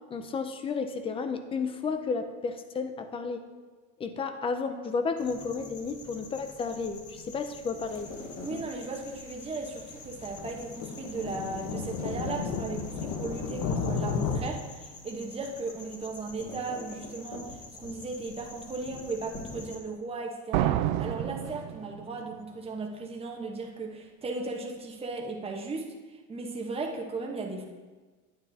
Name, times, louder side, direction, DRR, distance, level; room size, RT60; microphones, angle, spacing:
voice 1, 0.1-3.4 4.0-8.1, left 5 dB, 15° left, 8 dB, 0.3 m, -32 dB
sound 1, 5.2-19.8, left 3 dB, 35° left, 1.8 m, -46 dB
sound 2, 7.9-8.0 8.6-8.7 9.2-9.3 9.9-14.4, left 5 dB, 65° left, 1.0 m, -33 dB
voice 2, 8.4-27.6, right 3 dB, 15° right, 0 dB, 1.0 m, -36 dB
sound 3, 20.5-22.3, right 13 dB, 75° right, 0.5 m, -29 dB
9.3 x 8.9 x 2.7 m, 1.3 s
supercardioid pair, 135°, 39 cm